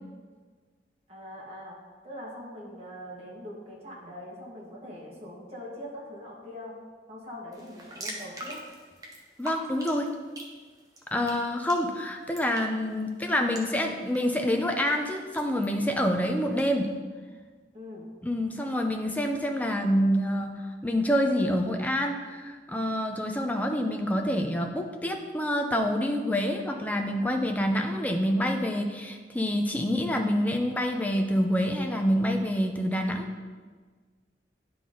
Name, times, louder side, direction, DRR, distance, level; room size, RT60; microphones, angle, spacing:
voice 1, 1.1-1.8 2.0-6.8 7.1-8.6 17.7-18.1, left 1 dB, 35° right, -5 dB, 1.8 m, -42 dB
sound 1, 7.5-16.7, right 1 dB, 20° right, 0.9 m, -46 dB
voice 2, 9.4-10.1 11.1-16.9 18.2-33.3, equal, 10° left, 3 dB, 0.5 m, -27 dB
11.0 x 3.9 x 3.8 m, 1.5 s
head